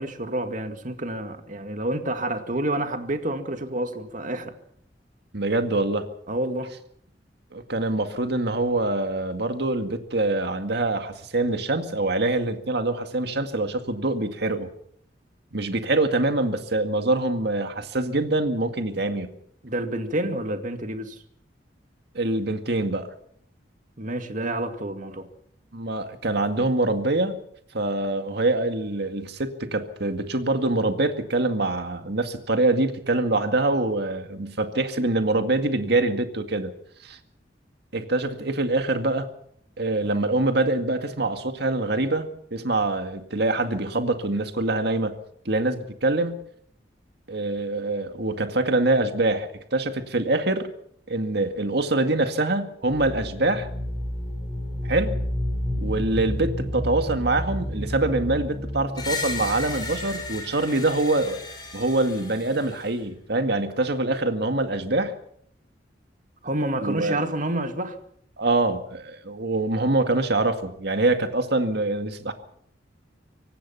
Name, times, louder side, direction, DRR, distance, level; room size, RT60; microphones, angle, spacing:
voice 1, 0.0-4.5 6.3-6.7 19.6-21.2 24.0-25.3 66.4-68.0, right 1 dB, 45° right, 2.1 m, -28 dB
voice 2, 5.3-6.1 7.5-14.7 15.5-19.3 22.1-23.1 25.7-27.4 27.7-36.7 37.0-37.2 37.9-39.3 39.8-45.1 45.5-46.4 47.3-50.7 51.1-53.7 54.8-55.2 55.8-61.4 61.7-65.1 66.8-67.2 68.4-72.3, right 2 dB, 65° right, 2.1 m, -24 dB
sound 1, 52.8-61.5, equal, 5° right, 3.9 m, -31 dB
Screech, 59.0-63.0, left 4 dB, 25° left, 6.9 m, -35 dB
25.0 x 18.0 x 5.8 m
head